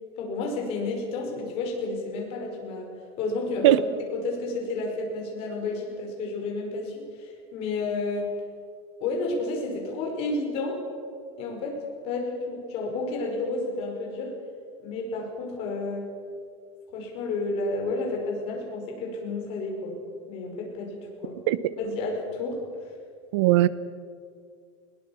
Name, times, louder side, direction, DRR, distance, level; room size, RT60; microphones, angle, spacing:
voice 1, 0.2-2.9 3.2-3.8 4.1-8.3 9.0-10.8 11.4-11.8 12.0-14.3 14.8-16.1 16.9-20.0 20.3-21.3 21.8-22.9, left 3 dB, 40° left, 5.3 m, -31 dB
voice 2, 23.3-23.7, right 16 dB, 90° right, 1.0 m, -18 dB
21.0 x 19.0 x 7.2 m
cardioid pair, 175°, 15 cm